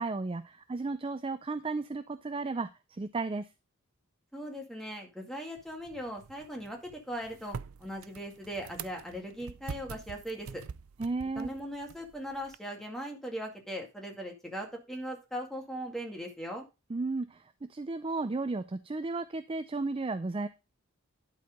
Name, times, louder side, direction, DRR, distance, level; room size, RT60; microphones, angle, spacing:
voice 1, 0.0-3.5 11.0-11.5 16.9-20.5, right 3 dB, 25° right, 11 dB, 0.4 m, -34 dB
voice 2, 4.3-10.6 11.4-16.7, equal, ahead, 1 dB, 2.1 m, -39 dB
sound 1, 5.6-12.6, right 6 dB, 85° right, 0.5 m, -46 dB
11.5 x 4.4 x 5.1 m, 0.26 s
head